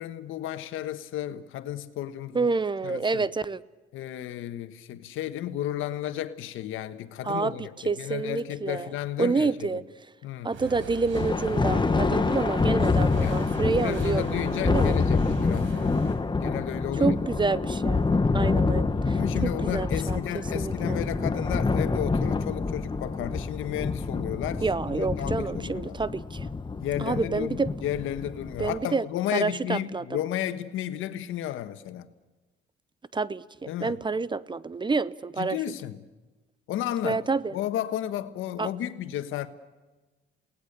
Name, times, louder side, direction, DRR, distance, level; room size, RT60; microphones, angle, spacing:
voice 1, 0.0-2.5 2.8-3.3 3.9-9.8 10.2-10.5 13.2-15.9 16.4-17.2 19.1-25.9 26.8-32.1 33.7-34.0 35.4-36.0 36.7-37.2 37.5-39.5, left 12 dB, 90° left, 1.4 m, -33 dB
voice 2, 2.3-3.6 7.2-8.9 9.2-9.8 10.4-14.2 14.7-15.0 17.0-18.1 18.3-20.2 20.5-21.0 24.6-26.5 27.0-27.7 28.6-29.0 29.3-30.2 33.1-35.6 37.0-37.5 38.6-38.7, right 4 dB, 25° right, 0.8 m, -28 dB
sound 1, 10.5-16.2, right 5 dB, 80° right, 5.3 m, -40 dB
Thunder, 11.1-28.8, left 4 dB, 25° left, 1.3 m, -27 dB
28.5 x 18.5 x 6.8 m
cardioid pair, 90°, 20 cm